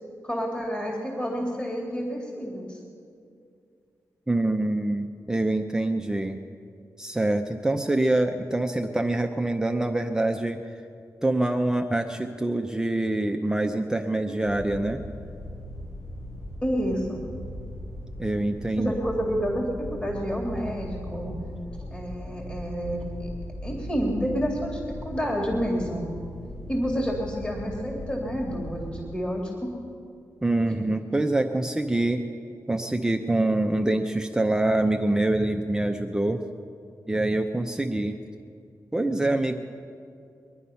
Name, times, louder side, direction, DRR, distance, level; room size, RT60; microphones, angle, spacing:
voice 1, 0.2-2.8 16.6-17.2 18.8-21.4 21.8-23.3 23.6-26.0 26.7-29.7, equal, 15° left, -1 dB, 2.3 m, -29 dB
voice 2, 4.3-6.4 7.0-10.6 11.2-15.0 18.2-18.9 30.4-32.2 32.7-36.4 37.1-38.2 38.9-39.6, right 2 dB, 10° right, 4 dB, 0.7 m, -25 dB
sound 1, 14.4-28.9, equal, 80° left, 4.8 m, -39 dB
23.0 x 10.0 x 5.6 m, 2.4 s
wide cardioid pair, 110°, 6 cm